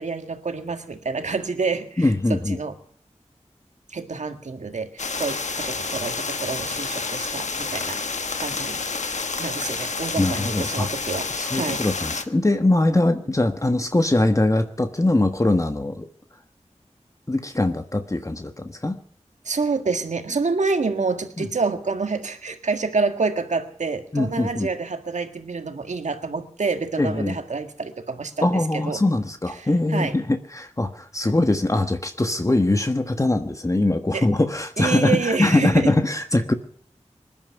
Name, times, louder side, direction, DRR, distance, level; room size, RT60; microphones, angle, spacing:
voice 1, 0.0-2.8 3.9-8.8 9.4-11.8 19.5-29.0 29.6-30.2 31.2-31.3 34.1-34.3 34.8-35.9, right 4 dB, 85° right, 7 dB, 1.8 m, -28 dB
voice 2, 2.0-2.6 10.2-10.9 11.3-16.1 17.3-19.0 21.4-21.5 24.1-24.7 27.0-27.4 28.4-36.5, left 2 dB, 25° left, 7 dB, 1.3 m, -22 dB
sound 1, 5.0-12.2, left 4 dB, 80° left, 1.4 m, -29 dB
20.5 x 11.5 x 5.8 m, 0.63 s
wide cardioid pair, 50°, 12 cm